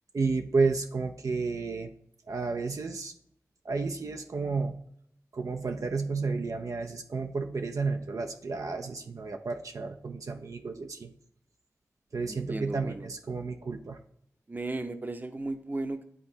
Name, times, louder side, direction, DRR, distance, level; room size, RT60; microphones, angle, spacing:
voice 1, 0.1-1.9 2.3-3.1 3.6-4.8 5.3-11.1 12.1-14.0, right 4 dB, 65° right, 4 dB, 0.5 m, -31 dB
voice 2, 12.3-13.1 14.5-16.1, right 2 dB, 30° right, 8 dB, 0.7 m, -35 dB
9.8 x 3.8 x 2.7 m, 0.69 s
cardioid pair, 45°, 6 cm